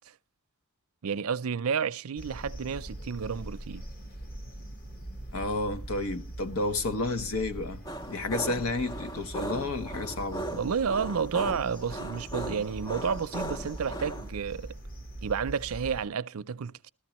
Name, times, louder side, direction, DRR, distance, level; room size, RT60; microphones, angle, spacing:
voice 1, 1.0-3.8 10.5-14.7 15.2-16.9, right 6 dB, 80° right, 0.5 m, -31 dB
sound 1, 2.2-16.1, right 1 dB, 45° left, 1.3 m, -42 dB
voice 2, 5.3-7.8 8.1-10.5, left 2 dB, 85° left, 1.0 m, -31 dB
sound 2, 7.8-14.3, right 1 dB, 20° left, 0.5 m, -38 dB
14.5 x 13.0 x 3.0 m
head